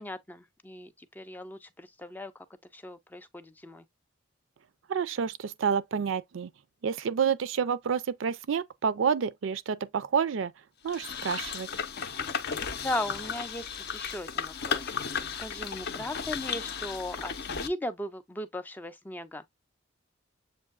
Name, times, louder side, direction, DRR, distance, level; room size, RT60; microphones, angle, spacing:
voice 1, 0.0-2.5 2.7-3.8 12.8-19.5, left 1 dB, 10° left, 0.3 m, -38 dB
voice 2, 4.9-6.5 6.8-10.5 10.8-11.7, right 7 dB, 75° right, 0.4 m, -29 dB
sound 1, 10.9-17.7, left 6 dB, 55° left, 0.6 m, -34 dB
7.2 x 2.6 x 2.3 m
head